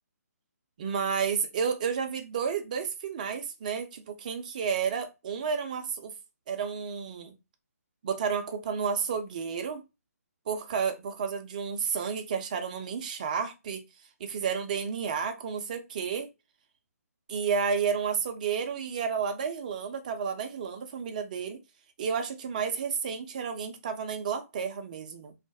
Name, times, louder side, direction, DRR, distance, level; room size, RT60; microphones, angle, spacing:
voice 1, 0.8-6.1 6.5-7.3 8.0-9.8 10.5-13.8 14.2-16.3 17.3-21.6 22.0-25.3, right 6 dB, 30° right, 0.4 m, -31 dB
2.3 x 2.1 x 2.5 m
figure-of-eight pair, 140°, 9 cm